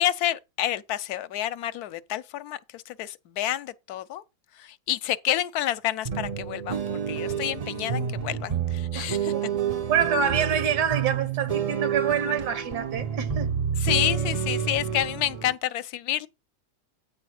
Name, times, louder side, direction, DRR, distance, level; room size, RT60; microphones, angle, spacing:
voice 1, 0.0-4.2 4.5-9.3 13.8-16.3, left 12 dB, 75° left, 1.1 m, -29 dB
sound 1, 6.0-15.5, right 7 dB, 60° right, 0.3 m, -29 dB
voice 2, 8.9-9.5 9.9-13.5, right 7 dB, 80° right, 1.5 m, -26 dB
8.9 x 4.1 x 6.3 m
omnidirectional pair, 1.7 m